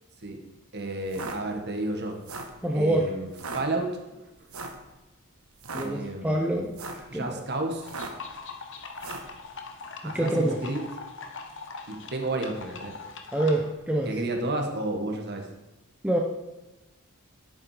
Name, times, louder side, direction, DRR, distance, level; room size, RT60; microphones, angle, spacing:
voice 1, 0.7-2.2 2.7-4.0 5.8-6.7 7.1-7.9 10.0-10.8 11.9-13.0 14.1-15.5, right 2 dB, 50° right, 4 dB, 1.8 m, -31 dB
sound 1, 1.1-1.4 2.1-2.6 3.3-3.6 4.5-4.8 5.5-5.9 6.6-7.1 7.8-8.3 9.0-9.3, right 3 dB, 80° right, 1.4 m, -37 dB
voice 2, 2.6-3.1 5.7-7.4 10.0-10.6 13.3-14.1 16.0-16.2, right 1 dB, 5° right, 0 dB, 0.8 m, -26 dB
sound 2, 7.8-13.7, left 4 dB, 60° left, 1.4 m, -42 dB
10.5 x 8.7 x 5.1 m, 1.0 s
head